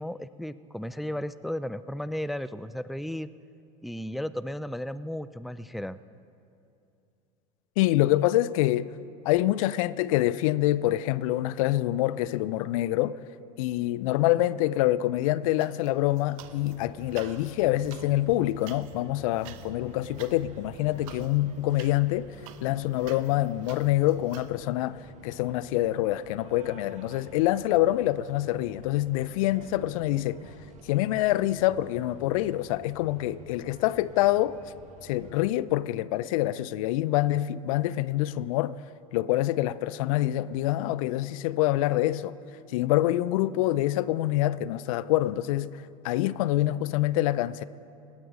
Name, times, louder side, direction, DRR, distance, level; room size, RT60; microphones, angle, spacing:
voice 1, 0.0-3.3 3.8-6.0, equal, ahead, 0.4 m, -34 dB
voice 2, 7.8-8.9 9.2-13.2 13.6-22.3 22.6-30.4 30.8-34.6 35.0-38.8 39.1-42.3 42.7-45.8 46.0-47.6, left 15 dB, 70° left, 0.5 m, -26 dB
sound 1, 15.6-16.8 17.0-24.5, right 11 dB, 70° right, 1.0 m, -50 dB
sound 2, 16.4-35.5, right 4 dB, 40° right, 1.6 m, -50 dB
19.0 x 10.5 x 6.3 m
hypercardioid pair, 80°, 18 cm